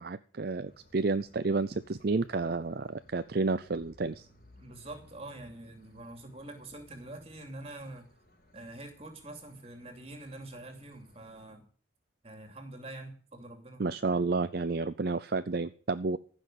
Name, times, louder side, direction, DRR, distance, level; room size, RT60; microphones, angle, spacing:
voice 1, 0.0-4.3 13.8-16.2, right 3 dB, 55° right, 12 dB, 0.5 m, -31 dB
sound 1, 0.6-11.5, left 1 dB, 50° left, 4.8 m, -61 dB
voice 2, 4.6-8.1 8.5-11.6 12.2-13.9, right 2 dB, 30° right, 5 dB, 2.8 m, -45 dB
15.0 x 6.3 x 9.2 m, 0.44 s
head